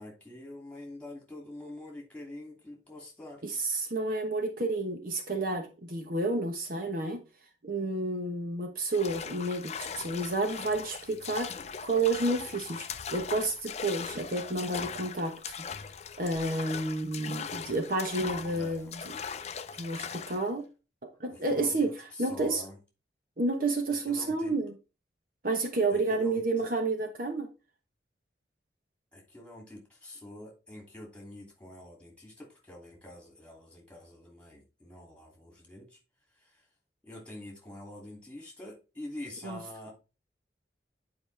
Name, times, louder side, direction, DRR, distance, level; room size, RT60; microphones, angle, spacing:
voice 1, 0.0-3.4 18.4-18.9 21.3-22.8 23.9-24.5 25.9-26.7 29.1-36.0 36.4-36.7 37.0-39.9, left 1 dB, 5° left, 0 dB, 2.7 m, -46 dB
voice 2, 3.4-7.2 7.6-11.5 11.8-15.7 16.2-19.1 19.8-20.6 21.2-21.9 22.2-22.6 23.4-24.7 25.4-27.5 39.4-39.6, right 2 dB, 50° right, 5 dB, 1.1 m, -30 dB
sound 1, 8.9-20.5, left 6 dB, 40° left, 0.5 m, -40 dB
9.7 x 4.9 x 3.4 m, 0.30 s
head